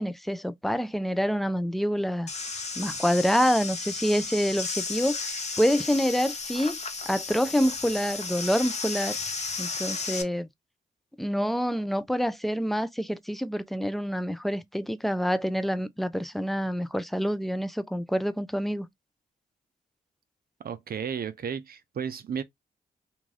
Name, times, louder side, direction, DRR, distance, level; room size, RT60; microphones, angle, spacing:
voice 1, 0.0-2.3 2.8-6.8 7.1-9.2 9.6-10.5 11.2-18.9, equal, ahead, 0.4 m, -27 dB
sound 1, 2.3-10.2, left 4 dB, 35° left, 0.8 m, -34 dB
voice 2, 20.6-22.4, right 7 dB, 55° right, 0.5 m, -33 dB
2.5 x 2.3 x 3.2 m
supercardioid pair, 50°, 19 cm